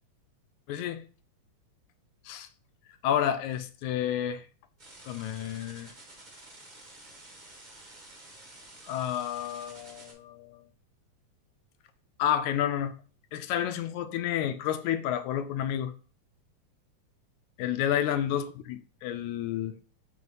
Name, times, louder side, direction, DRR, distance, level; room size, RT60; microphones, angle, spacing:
voice 1, 0.7-1.0 2.3-2.5 3.0-4.4 5.1-5.9 8.9-10.6 12.2-12.9 13.3-15.9 17.6-19.8, left 10 dB, 80° left, 2.0 m, -30 dB
sound 1, 4.8-10.1, right 2 dB, 55° right, 0.5 m, -51 dB
5.6 x 3.2 x 5.4 m
omnidirectional pair, 3.4 m